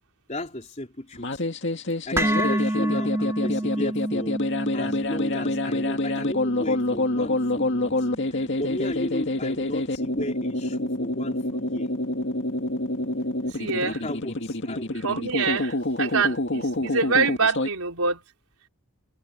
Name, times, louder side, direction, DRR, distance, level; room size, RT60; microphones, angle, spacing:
voice 1, 0.3-1.4 2.1-4.4 4.7-11.9 13.7-15.0, left 1 dB, 30° left, 3.5 m, -35 dB
sound 1, 1.1-17.7, left 2 dB, 55° left, 2.2 m, -27 dB
sound 2, 2.2-10.3, right 1 dB, 10° right, 2.5 m, -30 dB
voice 2, 13.5-14.0 14.9-18.2, right 4 dB, 75° right, 4.2 m, -25 dB
head